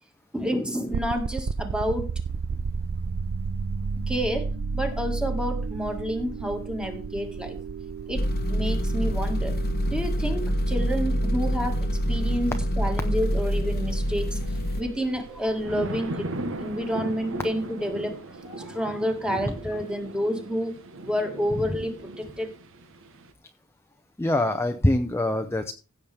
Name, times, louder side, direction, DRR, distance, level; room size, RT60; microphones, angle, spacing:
voice 1, 0.3-2.1 4.1-7.6 8.1-8.2 8.5-9.5 9.9-11.8 12.1-16.3 16.6-20.8 21.0-22.5, equal, 5° right, 4 dB, 1.8 m, -29 dB
sound 1, 0.9-17.8, right 4 dB, 80° right, 0.5 m, -34 dB
sound 2, 8.1-14.8, equal, 45° left, 1.0 m, -26 dB
sound 3, 13.1-23.3, right 2 dB, 60° right, 1.2 m, -38 dB
voice 2, 24.2-25.7, left 1 dB, 10° left, 6 dB, 0.6 m, -24 dB
16.0 x 7.2 x 3.4 m, 0.33 s
head